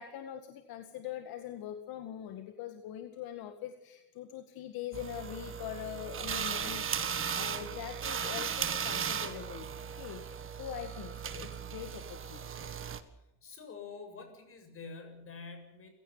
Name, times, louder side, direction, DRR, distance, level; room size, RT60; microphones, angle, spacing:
voice 1, 0.0-9.7 10.0-10.2 10.6-12.8, left 10 dB, 60° left, 7 dB, 2.1 m, -43 dB
sound 1, 4.9-13.0, right 7 dB, 30° right, 1.7 m, -37 dB
voice 2, 13.1-15.9, left 4 dB, 35° left, 6 dB, 7.4 m, -47 dB
28.5 x 16.5 x 5.8 m, 0.93 s
cardioid pair, 125°, 40 cm